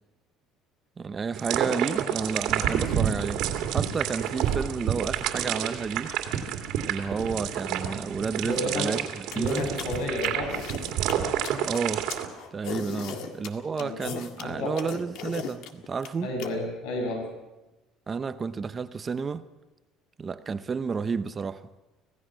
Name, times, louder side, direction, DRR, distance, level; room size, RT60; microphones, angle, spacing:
voice 1, 1.0-3.4 3.7-6.1 6.8-9.7 11.7-12.1 12.5-16.3 18.1-19.4 20.2-21.7, right 5 dB, 20° right, 0.7 m, -31 dB
sound 1, 1.3-12.3, right 10 dB, 65° right, 2.5 m, -29 dB
voice 2, 8.4-8.9 9.3-10.6 13.1-13.2 13.8-13.9 14.4-14.8 16.2-17.3, left 1 dB, 90° left, 6.7 m, -31 dB
sound 2, 9.3-16.5, left 8 dB, 70° left, 1.8 m, -37 dB
25.5 x 17.0 x 6.3 m
cardioid pair, 155°, 0 cm